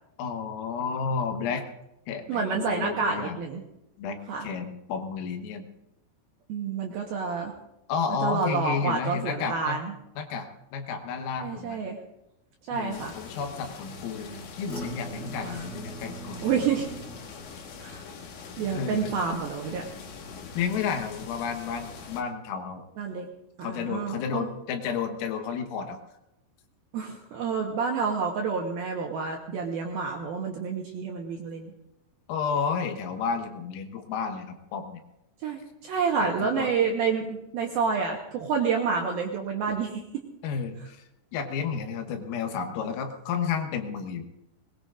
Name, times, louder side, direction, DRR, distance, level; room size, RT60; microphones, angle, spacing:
voice 1, 0.2-1.6 2.1-3.4 4.0-5.7 7.9-9.8 10.2-11.8 12.7-16.6 18.7-19.1 20.6-22.8 23.6-26.0 32.3-35.0 36.2-36.7 40.4-41.0 41.3-44.3, left 6 dB, 90° left, 5 dB, 4.0 m, -31 dB
voice 2, 2.3-3.6 4.3-4.5 6.5-7.5 8.2-9.9 11.4-12.0 12.7-13.1 15.4-15.6 16.4-16.9 17.8-18.0 18.6-19.8 23.0-23.3 23.6-24.5 26.9-31.7 35.4-40.2, right 5 dB, 75° right, 0 dB, 2.3 m, -29 dB
sound 1, 12.9-22.2, left 5 dB, 70° left, 3.5 m, -43 dB
sound 2, 14.7-19.9 20.2-20.7 21.1-21.2, right 2 dB, 40° left, 1.4 m, -43 dB
21.5 x 20.5 x 2.5 m, 0.88 s
omnidirectional pair, 5.8 m